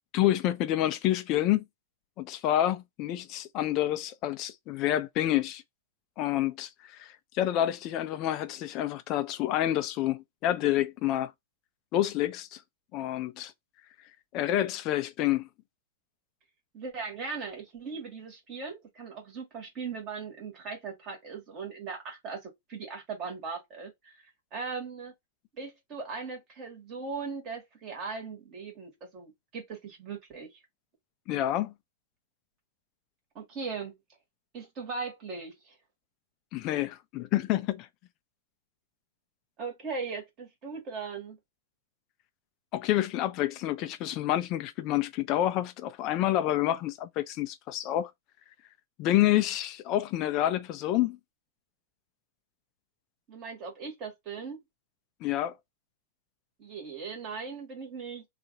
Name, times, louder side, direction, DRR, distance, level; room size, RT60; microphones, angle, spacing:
voice 1, 0.1-1.6 2.2-5.6 6.2-11.3 11.9-12.6 12.9-13.5 14.3-15.5 31.3-31.7 36.5-37.9 42.7-48.1 49.0-51.2 55.2-55.5, left 13 dB, 30° left, 0.5 m, -28 dB
voice 2, 16.7-25.1 25.5-30.5 33.3-33.9 34.5-35.8 39.6-41.4 53.3-54.6 56.6-58.3, right 5 dB, 30° right, 1.6 m, -39 dB
2.8 x 2.5 x 4.0 m
supercardioid pair, 165°, 0 cm